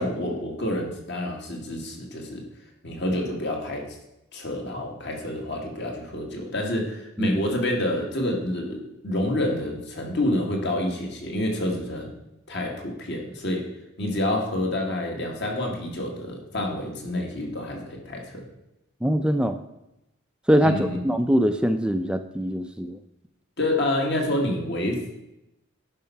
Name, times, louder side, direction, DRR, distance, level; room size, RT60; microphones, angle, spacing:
voice 1, 0.0-2.4 2.8-4.0 4.3-12.1 12.5-13.6 14.0-18.4 20.6-21.0 23.6-25.2, left 1 dB, 55° left, 1 dB, 2.0 m, -28 dB
voice 2, 19.0-19.6 20.5-23.0, equal, 5° right, 8 dB, 0.4 m, -22 dB
11.0 x 5.6 x 5.7 m, 0.89 s
head